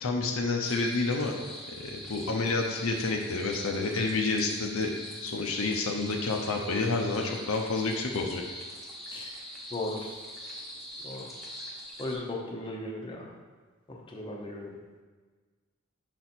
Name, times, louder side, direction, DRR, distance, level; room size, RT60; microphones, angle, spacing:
voice 1, 0.0-1.4 1.7-4.9 5.2-8.4, left 3 dB, 65° left, 1 dB, 0.6 m, -29 dB
sound 1, 0.6-12.2, equal, ahead, 1.1 m, -43 dB
voice 2, 9.7-10.1 11.0-11.3 12.0-13.3 14.1-14.7, left 2 dB, 25° left, -1 dB, 0.8 m, -36 dB
6.0 x 4.1 x 4.4 m, 1.4 s
head